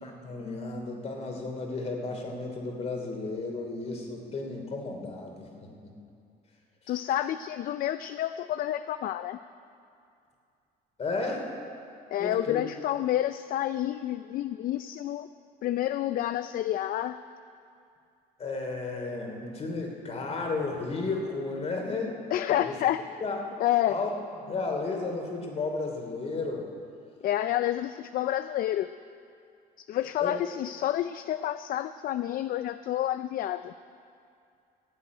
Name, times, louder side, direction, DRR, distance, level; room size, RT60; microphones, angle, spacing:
voice 1, 0.0-5.9 11.0-11.5 12.2-12.7 18.4-22.2 22.6-22.8 23.2-23.4 23.8-24.1 24.4-26.7 30.2-30.4, left 3 dB, 40° left, 2 dB, 2.9 m, -33 dB
voice 2, 6.9-9.4 12.1-15.3 15.6-17.2 22.3-23.0 23.6-24.0 27.2-28.9 29.8-33.7, left 12 dB, 60° left, 12 dB, 0.4 m, -29 dB
15.5 x 7.7 x 9.3 m, 2.4 s
cardioid pair, 110°, 17 cm